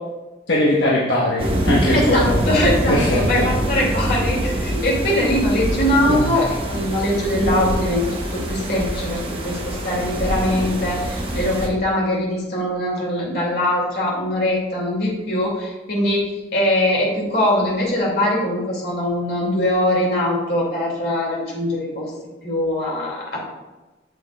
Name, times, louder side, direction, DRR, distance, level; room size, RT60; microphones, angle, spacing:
voice 1, 0.5-2.4 2.9-3.5 6.1-6.2, left 1 dB, 75° left, -5 dB, 1.2 m, -20 dB
sound 1, 1.4-11.7, equal, 30° right, 0.9 m, -24 dB
voice 2, 1.9-22.1 22.4-23.4, left 1 dB, 60° left, -3 dB, 2.4 m, -22 dB
8.0 x 7.1 x 2.4 m, 1.1 s
head